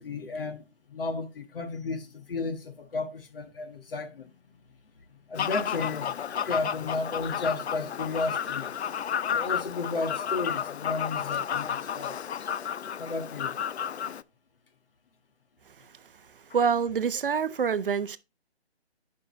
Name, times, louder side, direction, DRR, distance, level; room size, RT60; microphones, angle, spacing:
voice 1, 0.0-4.3 5.3-6.1 6.4-8.7 9.3-12.2 13.0-13.5, left 3 dB, 55° left, 1.5 m, -33 dB
Fowl, 5.4-14.2, left 8 dB, 80° left, 0.5 m, -32 dB
voice 2, 16.5-18.2, right 6 dB, 55° right, 0.6 m, -26 dB
10.5 x 5.3 x 3.0 m
figure-of-eight pair, 155°, 32 cm